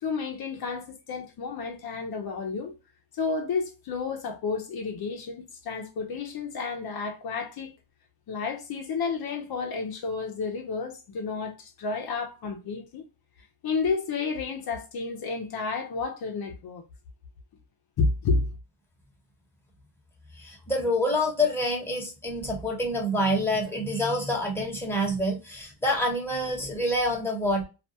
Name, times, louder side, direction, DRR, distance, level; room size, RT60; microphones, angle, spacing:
voice 1, 0.0-2.8 3.1-7.7 8.3-13.0 13.6-16.8 18.0-18.4, left 4 dB, 60° left, 0.7 m, -31 dB
voice 2, 20.4-27.6, left 1 dB, 5° left, 1.0 m, -27 dB
2.5 x 2.2 x 2.8 m
cardioid pair, 105°, 41 cm